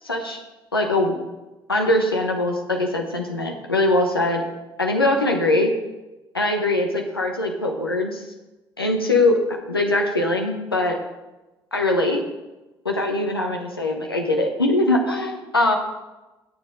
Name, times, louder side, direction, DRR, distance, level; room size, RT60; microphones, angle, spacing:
voice 1, 0.0-0.4 0.7-1.2 1.7-4.4 4.8-5.7 6.3-8.2 8.8-11.0 11.7-12.2 12.8-15.8, left 2 dB, 90° left, 2 dB, 1.0 m, -22 dB
18.5 x 7.1 x 3.7 m, 1.1 s
figure-of-eight pair, 50°, 12 cm